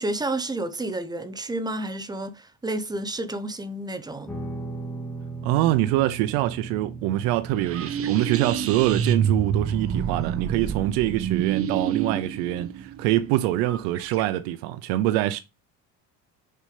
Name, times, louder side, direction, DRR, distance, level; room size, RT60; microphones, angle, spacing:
voice 1, 0.0-4.3, right 1 dB, 10° right, 0.9 m, -30 dB
Guitar, 4.3-13.5, right 3 dB, 5° left, 2.3 m, -39 dB
voice 2, 5.4-15.4, right 14 dB, 85° right, 0.8 m, -24 dB
sound 1, 7.5-14.2, right 8 dB, 40° right, 1.0 m, -27 dB
6.8 x 5.6 x 5.0 m
cardioid pair, 130°, 36 cm